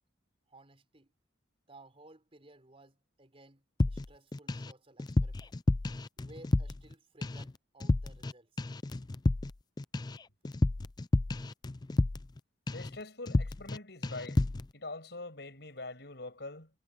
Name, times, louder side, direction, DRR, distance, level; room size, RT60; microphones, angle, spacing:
voice 1, 0.5-1.1 1.7-5.5 6.2-8.6, right 2 dB, 30° right, 4.5 m, -57 dB
sound 1, 3.8-4.7 5.0-6.9 7.2-7.5 7.8-8.3 8.6-12.4 12.7-13.0 13.3-13.8 14.0-14.7, left 2 dB, 20° left, 0.4 m, -30 dB
voice 2, 12.7-14.4 14.7-16.7, left 2 dB, 65° left, 7.4 m, -44 dB
head